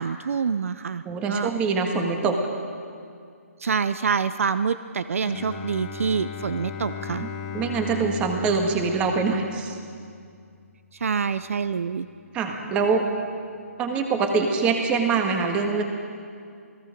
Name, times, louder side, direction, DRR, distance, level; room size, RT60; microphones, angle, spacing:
voice 1, 0.0-1.5 3.6-7.2 10.9-12.1, right 5 dB, 65° right, 13 dB, 0.7 m, -26 dB
voice 2, 1.0-2.4 7.2-7.3 7.5-9.8 12.3-13.0 13.8-15.8, right 4 dB, 15° right, 4 dB, 1.7 m, -24 dB
Bowed string instrument, 5.2-10.9, left 6 dB, 25° left, 2.1 m, -37 dB
28.5 x 18.5 x 5.2 m, 2.3 s
hypercardioid pair, 160°, 8 cm